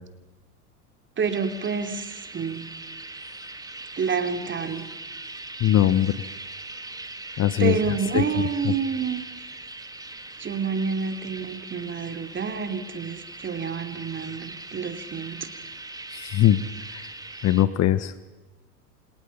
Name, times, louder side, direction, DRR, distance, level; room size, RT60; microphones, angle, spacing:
sound 1, 1.2-17.6, right 2 dB, 10° right, 2.4 m, -40 dB
voice 1, 1.2-2.7 4.0-4.8 7.6-9.2 10.4-15.4, right 6 dB, 25° right, 7 dB, 3.1 m, -28 dB
voice 2, 5.6-6.1 7.4-7.7 8.1-8.2 16.1-16.6 16.9-17.0 17.4-18.2, left 12 dB, 35° left, 15 dB, 1.2 m, -20 dB
29.0 x 28.0 x 5.8 m, 1.1 s
figure-of-eight pair, 80°, 46 cm